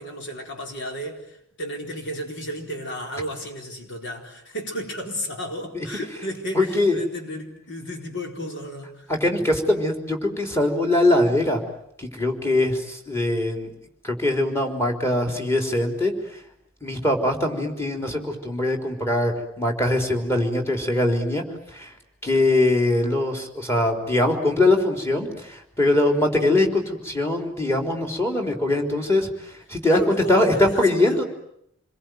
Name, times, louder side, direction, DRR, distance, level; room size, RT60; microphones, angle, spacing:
voice 1, 0.0-9.1 22.3-22.5 29.8-31.2, equal, 60° left, 3 dB, 4.5 m, -33 dB
voice 2, 6.5-7.0 9.2-11.6 12.0-13.7 14.0-16.1 16.8-21.4 21.8-21.9 22.2-29.3 29.7-31.2, left 1 dB, 15° left, 3 dB, 3.9 m, -22 dB
28.0 x 22.0 x 9.4 m, 0.75 s
head